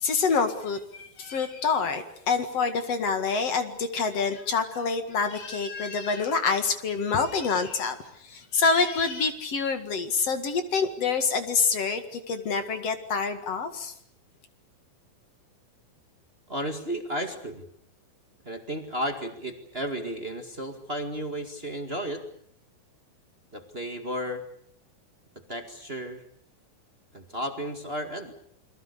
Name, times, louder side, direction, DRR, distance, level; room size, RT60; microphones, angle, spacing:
voice 1, 0.0-8.0 8.3-13.9, left 5 dB, 50° left, 8 dB, 2.7 m, -26 dB
voice 2, 16.5-17.7 18.4-22.2 23.5-24.4 25.5-26.2 27.1-28.3, equal, 25° right, 5 dB, 1.4 m, -33 dB
28.5 x 23.0 x 6.8 m, 0.67 s
omnidirectional pair, 4.3 m